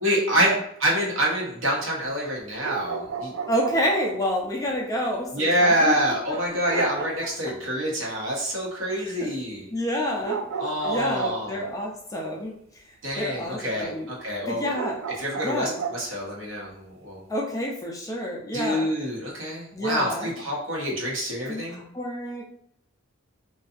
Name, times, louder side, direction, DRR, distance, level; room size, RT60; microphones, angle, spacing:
voice 1, 0.0-3.3 5.3-9.7 10.6-11.6 13.0-14.7 15.2-17.2 18.5-21.8, right 1 dB, 70° right, -4 dB, 0.9 m, -26 dB
sound 1, 2.6-4.2 6.7-7.5 10.2-11.8 14.7-16.1, right 5 dB, 85° right, 0.3 m, -33 dB
voice 2, 3.5-5.9 9.0-9.3 9.7-10.4 10.9-12.5 13.2-14.1 14.5-15.0 15.4-15.8 17.3-18.9 19.7-20.3 21.5-22.4, equal, 15° left, -2 dB, 0.3 m, -28 dB
2.6 x 2.3 x 2.4 m, 0.71 s
head